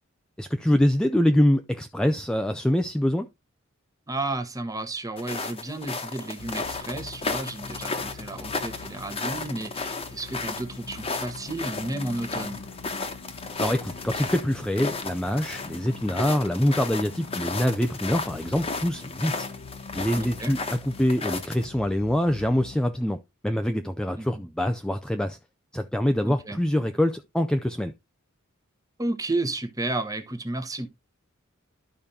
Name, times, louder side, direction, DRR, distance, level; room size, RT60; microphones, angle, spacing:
voice 1, 0.4-3.3 13.6-19.5 19.9-25.4 25.7-27.9, left 1 dB, 5° left, 0.4 m, -25 dB
voice 2, 4.1-12.6 20.1-20.5 24.2-24.5 26.2-26.6 29.0-30.9, right 2 dB, 15° right, 1.1 m, -32 dB
sound 1, 5.2-21.6, left 3 dB, 30° left, 1.1 m, -34 dB
sound 2, 6.4-22.8, left 4 dB, 80° left, 1.0 m, -44 dB
12.5 x 5.1 x 2.7 m
head